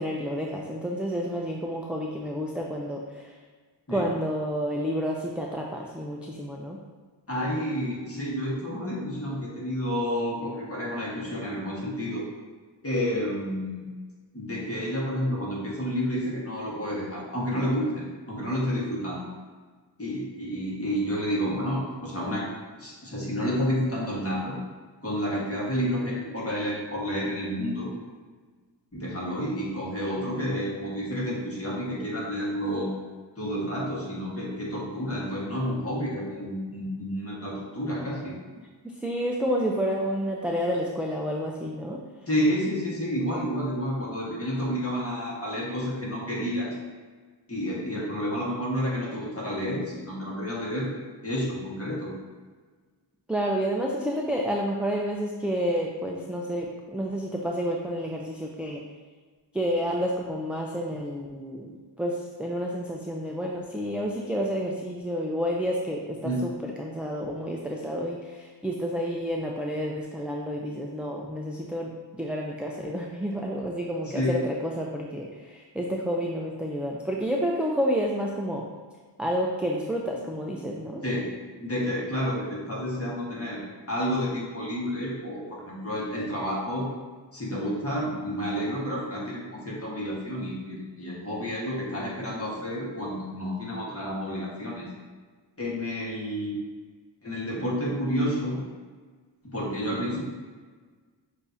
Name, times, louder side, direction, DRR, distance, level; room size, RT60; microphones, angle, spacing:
voice 1, 0.0-3.3 3.9-6.8 38.8-42.0 53.3-58.8 59.5-61.7 62.0-66.5 66.8-78.6 79.2-81.0, equal, 5° right, -2 dB, 0.4 m, -30 dB
voice 2, 7.3-12.2 12.8-13.9 14.3-19.3 20.0-22.5 22.8-24.5 25.0-27.9 28.9-32.9 33.4-38.3 42.3-46.8 47.5-50.9 51.2-52.1 66.2-66.4 74.0-74.4 81.0-81.3 81.6-83.6 83.9-86.9 87.3-94.8 95.6-96.6 97.2-98.6 99.4-100.2, equal, 30° left, -5 dB, 1.4 m, -30 dB
6.7 x 2.7 x 2.7 m, 1.5 s
wide cardioid pair, 55°, 46 cm